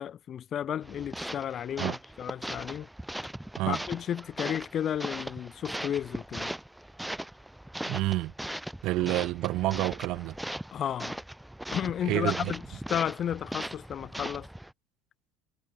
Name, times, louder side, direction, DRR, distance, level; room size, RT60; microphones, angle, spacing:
voice 1, 0.0-2.9 3.7-6.5 10.7-11.2 11.7-12.6 12.9-14.5, left 9 dB, 35° left, 1.3 m, -33 dB
sound 1, 0.8-14.7, right 1 dB, 5° right, 4.1 m, -39 dB
voice 2, 7.9-8.3 8.8-10.4 12.0-12.5, right 18 dB, 55° right, 3.1 m, -29 dB
cardioid pair, 155°, 0 cm